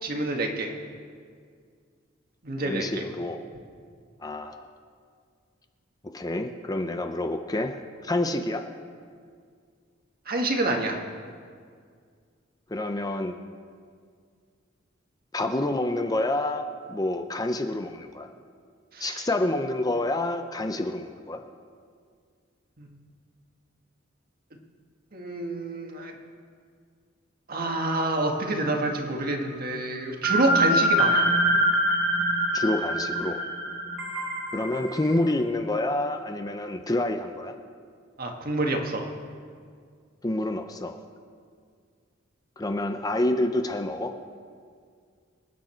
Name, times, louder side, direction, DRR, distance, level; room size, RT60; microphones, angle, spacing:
voice 1, 0.0-0.7 2.4-3.0 10.3-11.0 18.9-19.3 22.8-23.0 25.1-26.1 27.5-31.3 38.2-39.1, right 2 dB, 50° right, 2 dB, 1.7 m, -27 dB
voice 2, 2.6-3.4 4.2-4.7 6.1-8.7 12.7-13.3 15.3-18.3 19.0-21.4 32.5-33.4 34.5-37.6 40.2-41.0 42.6-44.1, left 1 dB, 20° left, 6 dB, 0.6 m, -28 dB
sound 1, 27.8-29.0 30.2-35.1, right 1 dB, 75° right, 2.8 m, -25 dB
26.0 x 9.1 x 4.4 m, 2.1 s
head